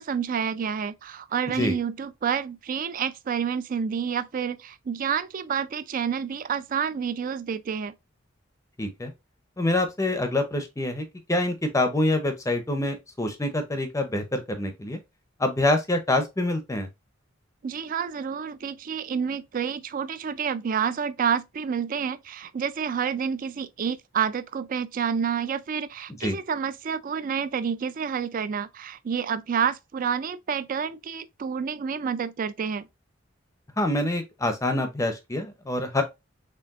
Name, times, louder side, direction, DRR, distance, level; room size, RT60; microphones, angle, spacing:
voice 1, 0.0-7.9 17.6-32.8, right 7 dB, 45° right, 0.3 m, -29 dB
voice 2, 8.8-9.1 9.6-15.0 15.4-16.9 26.2-26.4 33.8-36.0, left 1 dB, 15° left, 0.6 m, -26 dB
4.5 x 3.3 x 2.4 m
head